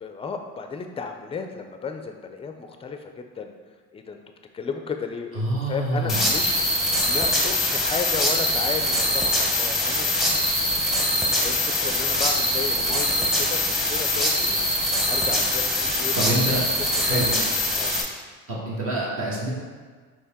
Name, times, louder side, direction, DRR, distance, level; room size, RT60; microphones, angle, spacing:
voice 1, 0.0-3.5 3.9-4.2 4.5-10.4 11.3-16.7 17.0-17.2 17.7-17.9, left 5 dB, 20° left, 5 dB, 0.4 m, -34 dB
voice 2, 5.3-6.3 16.2-16.6 17.0-17.3 18.5-19.5, right 1 dB, 45° right, -5 dB, 1.4 m, -26 dB
sound 1, 6.1-18.0, left 1 dB, ahead, 0.8 m, -23 dB
4.5 x 3.0 x 3.6 m, 1.5 s
supercardioid pair, 95°, 31 cm